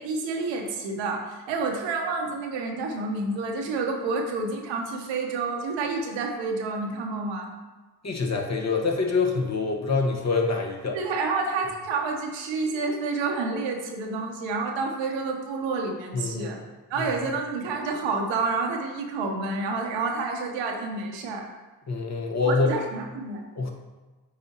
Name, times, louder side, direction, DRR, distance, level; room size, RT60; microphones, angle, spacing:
voice 1, 0.0-7.5 10.9-16.6 16.9-21.5 22.4-23.4, right 3 dB, 90° right, 2 dB, 1.0 m, -29 dB
voice 2, 8.0-11.0 16.1-16.5 17.0-17.1 21.9-22.7 23.6-23.7, left 4 dB, 35° left, 0 dB, 1.4 m, -25 dB
8.5 x 4.2 x 2.9 m, 1.2 s
supercardioid pair, 50°, 43 cm